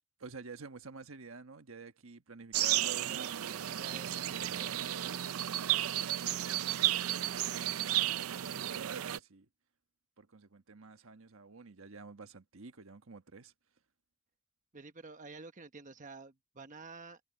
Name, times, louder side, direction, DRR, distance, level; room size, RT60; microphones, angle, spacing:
voice 1, 0.2-3.3 3.8-4.9 5.7-9.5 10.2-13.5, right 4 dB, 70° right, 1.3 m, -50 dB
sound 1, 2.5-9.2, right 13 dB, 85° right, 0.5 m, -33 dB
voice 2, 3.0-5.2 14.7-17.2, right 3 dB, 40° right, 1.2 m, -50 dB
head